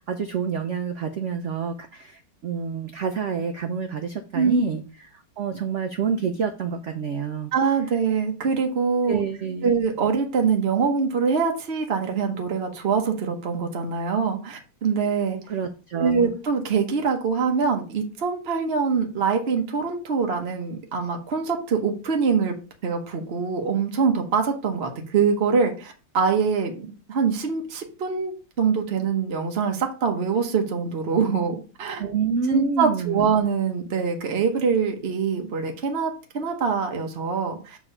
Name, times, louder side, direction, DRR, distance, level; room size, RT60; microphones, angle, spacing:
voice 1, 0.1-4.8 5.1-7.5 9.1-9.7 15.5-16.3 32.0-33.3, right 6 dB, 80° right, 6 dB, 0.6 m, -28 dB
voice 2, 7.5-9.2 9.6-15.4 16.0-22.5 22.8-32.0 32.5-37.8, right 5 dB, 45° right, 3 dB, 0.9 m, -24 dB
6.9 x 3.6 x 5.4 m, 0.35 s
omnidirectional pair, 2.1 m